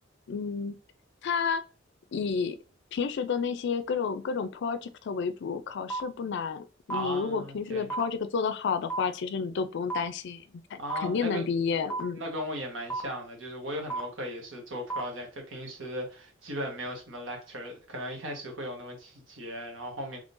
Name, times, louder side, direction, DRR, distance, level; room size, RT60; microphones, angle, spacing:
voice 1, 0.3-0.7 1.2-1.6 2.1-2.6 2.9-10.4 10.7-12.2, left 5 dB, 60° left, 0.4 m, -30 dB
sound 1, 5.9-6.0 6.9-7.0 7.9-8.0 8.9-9.0 9.9-10.0 10.9-11.0 11.9-12.0 12.9-13.0 13.9-14.0 14.9-15.0, right 3 dB, 5° left, 0.7 m, -31 dB
voice 2, 6.9-7.9 10.8-11.4 12.1-20.2, equal, 80° right, 1.3 m, -37 dB
3.7 x 3.2 x 2.6 m
head